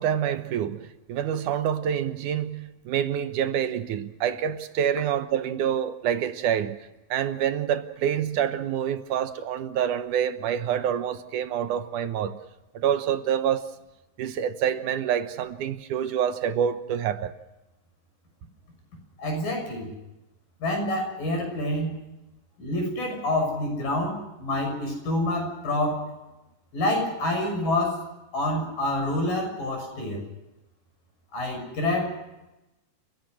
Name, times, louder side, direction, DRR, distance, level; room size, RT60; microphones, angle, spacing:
voice 1, 0.0-6.8 7.1-12.4 12.7-13.6 14.2-17.3, right 9 dB, 75° right, 2.5 m, -27 dB
voice 2, 19.2-19.9 20.6-22.0 22.6-26.1 26.7-28.0 28.3-30.2 31.3-32.1, left 1 dB, 85° left, 8.0 m, -27 dB
30.0 x 17.0 x 6.4 m
omnidirectional pair, 3.8 m